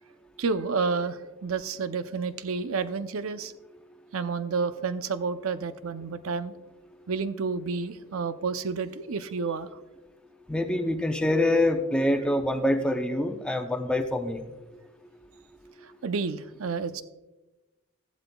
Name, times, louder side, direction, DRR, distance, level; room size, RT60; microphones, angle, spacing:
voice 1, 0.4-3.5 4.1-6.5 7.1-9.8 15.8-17.0, right 4 dB, 80° right, 11 dB, 0.6 m, -30 dB
voice 2, 10.5-14.4, left 1 dB, 5° left, 4 dB, 0.6 m, -25 dB
14.5 x 11.5 x 2.3 m, 1.1 s
head